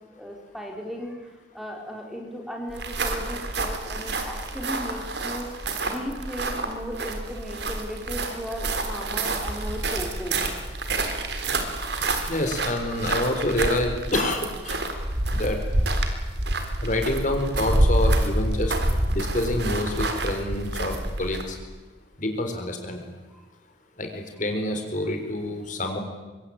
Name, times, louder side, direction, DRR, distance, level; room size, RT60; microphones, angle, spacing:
voice 1, 0.1-5.5 5.8-10.4 23.3-23.5, equal, ahead, 2 dB, 4.0 m, -36 dB
sound 1, 2.7-21.6, right 1 dB, 65° right, 3.9 m, -27 dB
voice 2, 12.3-14.8 15.3-15.6 16.8-18.7 19.1-21.6 22.2-23.0 24.0-26.0, left 1 dB, 45° left, 5 dB, 4.2 m, -27 dB
25.0 x 24.0 x 8.9 m, 1.2 s
head